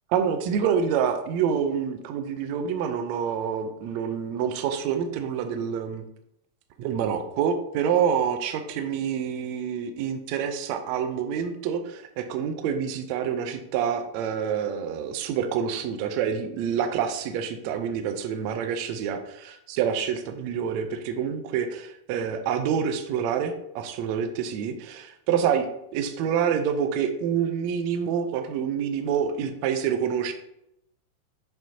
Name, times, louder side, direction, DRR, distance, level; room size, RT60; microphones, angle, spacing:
voice 1, 0.1-6.0 6.8-25.7 25.9-30.3, right 7 dB, 80° right, 7 dB, 1.8 m, -27 dB
7.5 x 5.3 x 2.7 m, 0.79 s
omnidirectional pair, 3.3 m